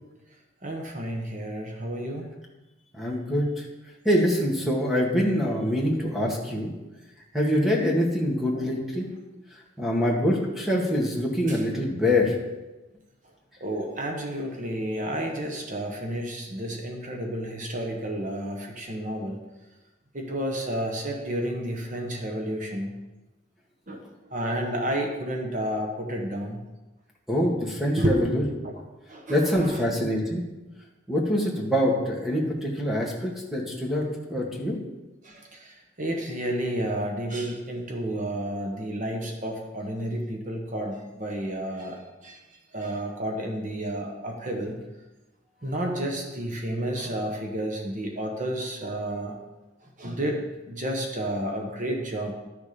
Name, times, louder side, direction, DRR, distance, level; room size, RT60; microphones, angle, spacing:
voice 1, 0.6-2.4 8.5-8.8 11.5-11.6 13.6-19.4 20.1-22.9 23.9-24.0 24.3-26.6 28.0-28.1 28.6-28.7 29.1-29.8 35.2-42.4 42.7-44.8 45.6-49.3 49.8-52.3, right 1 dB, 40° right, 2 dB, 1.2 m, -31 dB
voice 2, 3.0-3.6 4.1-6.7 7.3-9.1 9.8-12.3 27.3-28.4 29.3-30.4 31.1-34.8, equal, ahead, -2 dB, 1.8 m, -25 dB
12.0 x 6.8 x 5.0 m, 1.1 s
head